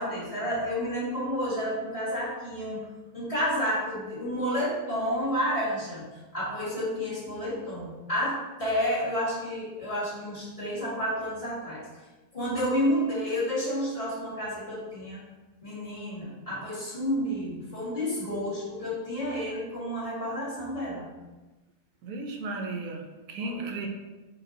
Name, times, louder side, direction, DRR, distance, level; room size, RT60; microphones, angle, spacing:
voice 1, 0.0-2.9 3.1-6.1 6.3-11.9 12.3-15.2 15.6-21.1 23.4-23.7, equal, 25° left, -7 dB, 1.4 m, -30 dB
voice 2, 22.0-23.0 23.3-23.9, right 3 dB, 85° right, 3 dB, 1.2 m, -34 dB
5.8 x 2.3 x 3.8 m, 1.1 s
omnidirectional pair, 1.5 m